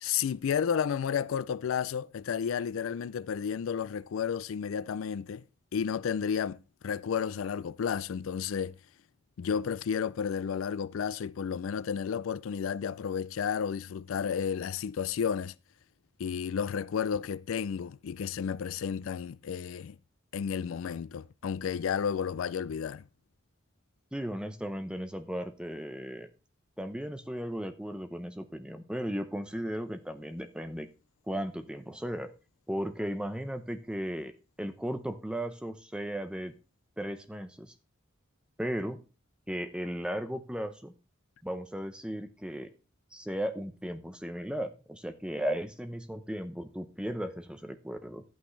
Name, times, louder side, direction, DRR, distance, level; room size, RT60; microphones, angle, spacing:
voice 1, 0.0-5.4 5.7-8.7 9.4-15.5 16.2-20.0 20.3-23.0, left 7 dB, 80° left, 0.4 m, -32 dB
voice 2, 24.1-26.3 26.8-30.9 31.3-32.3 32.7-34.3 34.6-36.5 37.0-37.7 38.6-39.0 39.5-40.9 41.4-42.7 43.1-48.2, equal, 5° right, 0.7 m, -36 dB
12.0 x 8.6 x 3.2 m
head